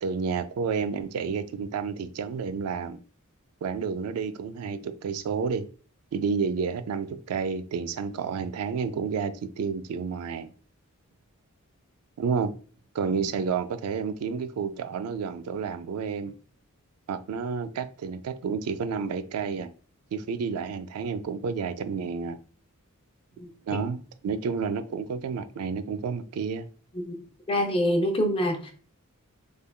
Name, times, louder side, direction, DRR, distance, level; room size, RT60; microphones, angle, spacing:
voice 1, 0.0-3.0 3.6-5.6 6.1-10.5 12.2-12.5 12.9-16.3 17.1-19.7 20.1-22.4 23.7-26.7, right 5 dB, 80° right, 0.3 m, -30 dB
voice 2, 27.5-28.7, equal, 25° left, 0.6 m, -25 dB
3.6 x 3.3 x 2.2 m
head